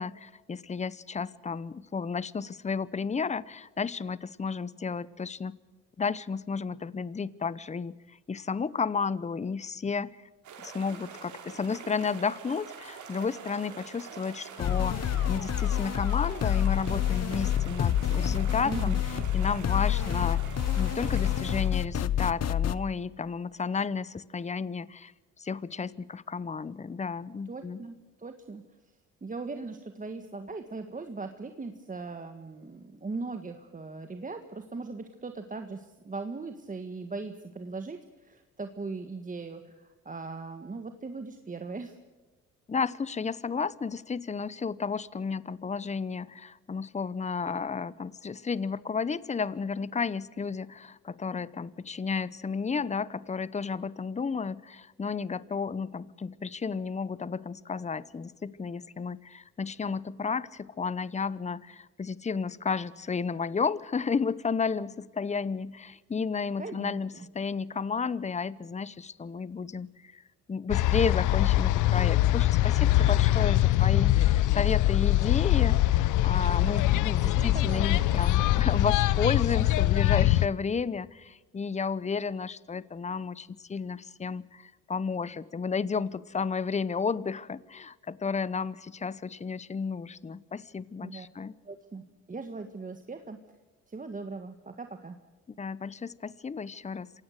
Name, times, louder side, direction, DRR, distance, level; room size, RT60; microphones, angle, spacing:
voice 1, 0.0-5.6 6.0-7.9 8.3-10.1 10.6-19.0 19.3-25.1 25.4-27.8 42.7-70.2 70.5-91.5 95.6-97.2, left 5 dB, 25° left, 20 dB, 0.8 m, -32 dB
sound 1, 10.4-21.7, right 6 dB, 75° right, 4.8 m, -45 dB
sound 2, 14.6-22.7, left 10 dB, 55° left, 1.0 m, -28 dB
voice 2, 18.6-19.3 27.5-28.6 29.2-42.0 66.6-67.3 77.4-78.1 91.0-91.3 91.7-92.0 92.3-93.4 93.9-95.2, right 3 dB, 25° right, 7 dB, 1.6 m, -39 dB
sound 3, 70.7-80.5, left 15 dB, 85° left, 0.8 m, -23 dB
26.5 x 17.5 x 6.5 m, 1.2 s
cardioid pair, 90°, 30 cm